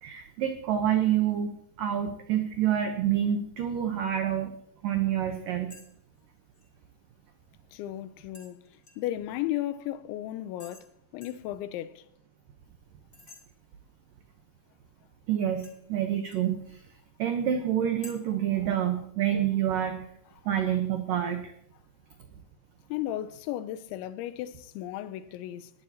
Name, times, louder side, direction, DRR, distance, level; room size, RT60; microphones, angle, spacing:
voice 1, 0.0-1.5 1.8-4.5 4.8-5.7 15.3-16.8 17.2-20.1 20.5-21.4, right 10 dB, 80° right, 2.0 m, -27 dB
sound 1, 5.7-5.9 6.2-6.7 8.3-9.2 10.6-10.9 11.2-11.5 13.1-13.4 15.6-16.5 18.0-18.1, left 3 dB, 55° left, 0.8 m, -51 dB
voice 2, 7.7-10.9 11.1-12.1 22.9-25.7, left 13 dB, 85° left, 2.9 m, -35 dB
20.0 x 14.5 x 2.9 m
omnidirectional pair, 5.4 m